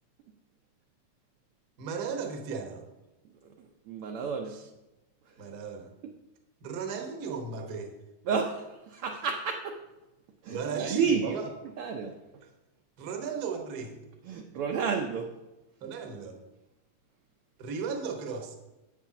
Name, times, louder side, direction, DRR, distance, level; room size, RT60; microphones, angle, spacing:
voice 1, 1.8-2.8 5.4-5.9 6.6-7.9 10.5-11.4 13.0-14.0 15.8-16.4 17.6-18.6, right 5 dB, 55° right, 4 dB, 1.1 m, -35 dB
voice 2, 3.4-4.6 5.3-5.5 6.0-6.1 8.2-9.8 10.4-11.4 11.8-12.4 14.2-15.3, right 6 dB, 75° right, 3 dB, 1.3 m, -31 dB
7.9 x 7.3 x 5.8 m, 1.0 s
omnidirectional pair, 3.3 m